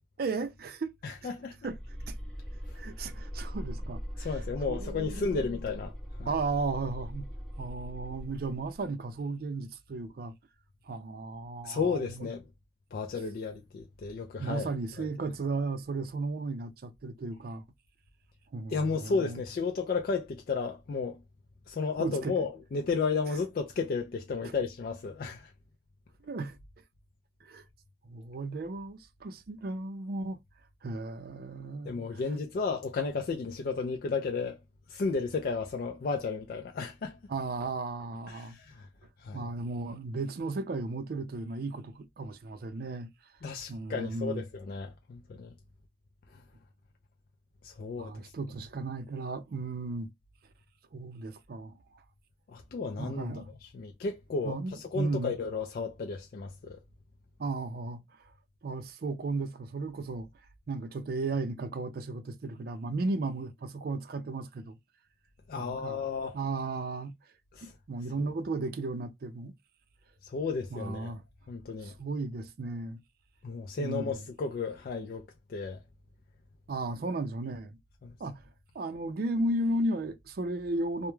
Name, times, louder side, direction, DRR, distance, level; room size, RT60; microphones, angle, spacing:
voice 1, 0.2-0.9 1.2-1.3 1.6-1.8 2.1-2.2 2.8-5.4 6.2-7.3 7.6-10.3 10.9-12.3 14.4-17.6 18.5-19.4 22.0-22.5 23.3-23.4 24.4-24.5 26.2-26.6 27.4-27.6 28.0-30.4 30.8-32.2 37.3-38.6 39.3-43.1 43.7-44.4 48.0-50.1 50.9-52.0 53.0-53.5 54.4-55.4 57.4-58.0 58.6-60.3 60.7-64.8 65.6-66.0 66.3-67.1 67.6-69.5 70.7-71.2 71.8-73.0 73.8-74.2 76.7-77.8 78.2-78.4 78.7-81.1, right 3 dB, 55° right, 0.4 m, -35 dB
voice 2, 1.0-1.5 2.7-2.8 4.2-5.9 6.2-6.3 11.6-12.4 12.9-14.7 15.0-15.1 18.7-21.2 21.7-25.5 31.9-34.6 34.9-37.2 38.3-38.9 39.2-39.4 43.4-45.5 46.3-46.4 47.6-48.1 52.5-56.8 65.5-66.4 67.5-67.7 68.2-68.3 70.2-71.1 71.5-71.9 73.4-75.8 78.0-78.1, left 4 dB, 50° left, 0.3 m, -33 dB
sound 1, 1.6-8.9, equal, 5° left, 0.6 m, -40 dB
2.2 x 2.0 x 3.0 m
head